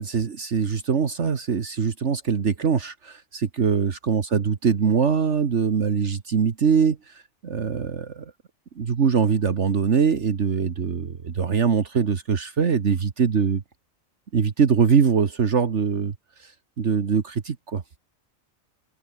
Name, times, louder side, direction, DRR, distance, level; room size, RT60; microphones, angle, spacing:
voice 1, 0.0-8.3 8.8-13.6 14.3-16.1 16.4-16.5 16.8-17.8, right 6 dB, 60° right, 1.6 m, -22 dB
omnidirectional pair, 1.4 m